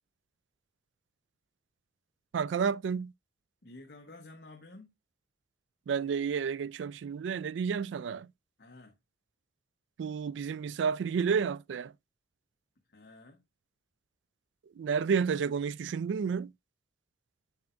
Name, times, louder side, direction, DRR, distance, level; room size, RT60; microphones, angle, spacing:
voice 1, 2.3-3.1 5.9-8.3 10.0-11.9 14.8-16.5, right 6 dB, 85° right, 0.3 m, -31 dB
voice 2, 3.6-4.9 8.6-9.0 12.9-13.5, left 2 dB, 60° left, 1.0 m, -51 dB
7.8 x 7.1 x 2.5 m
head